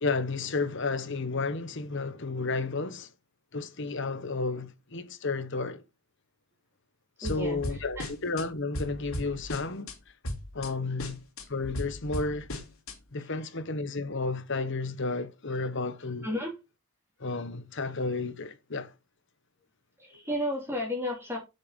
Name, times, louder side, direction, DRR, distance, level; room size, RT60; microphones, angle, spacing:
voice 1, 0.0-3.1 3.5-5.8 7.2-9.9 10.5-11.2 11.5-12.5 13.1-16.3 17.2-18.9, left 3 dB, 55° left, 1.1 m, -32 dB
sound 1, 7.2-8.4 8.7-9.9 10.2-10.7 11.0-12.9, left 1 dB, 70° left, 2.8 m, -36 dB
voice 2, 7.2-7.6 8.0-8.1 16.2-16.5 20.0-21.4, left 1 dB, 10° right, 3.0 m, -32 dB
8.0 x 6.6 x 5.1 m
head